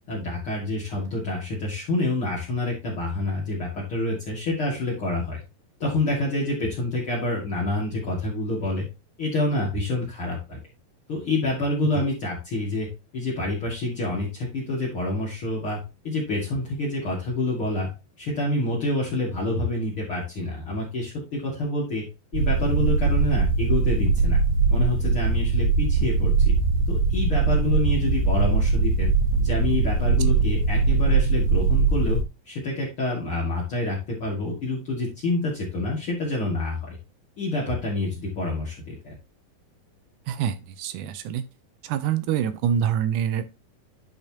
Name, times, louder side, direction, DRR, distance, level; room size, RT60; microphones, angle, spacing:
voice 1, 0.1-5.4 5.8-8.9 9.2-10.6 11.1-12.9 13.1-15.8 16.0-17.9 18.2-22.0 22.3-24.4 24.7-26.6 26.9-29.1 29.4-32.2 32.5-37.0 37.4-39.2, left 2 dB, 40° left, -5 dB, 2.9 m, -27 dB
sound 1, 22.3-32.2, right 4 dB, 40° right, 1.5 m, -21 dB
voice 2, 40.3-41.4 41.8-43.5, right 9 dB, 75° right, 12 dB, 2.1 m, -26 dB
11.0 x 5.4 x 2.9 m, 0.27 s
omnidirectional pair, 4.1 m